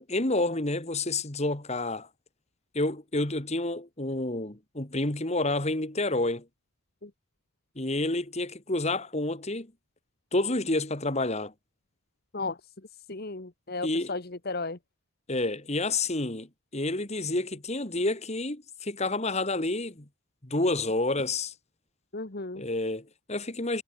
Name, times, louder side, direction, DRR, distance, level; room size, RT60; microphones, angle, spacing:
voice 1, 0.0-2.1 2.7-6.5 7.8-9.7 10.3-11.5 13.8-14.2 15.3-20.1 20.4-21.5 22.6-23.8, left 2 dB, 30° left, 2.1 m, -29 dB
voice 2, 13.1-14.8 22.1-22.6, left 3 dB, 45° left, 1.4 m, -34 dB
head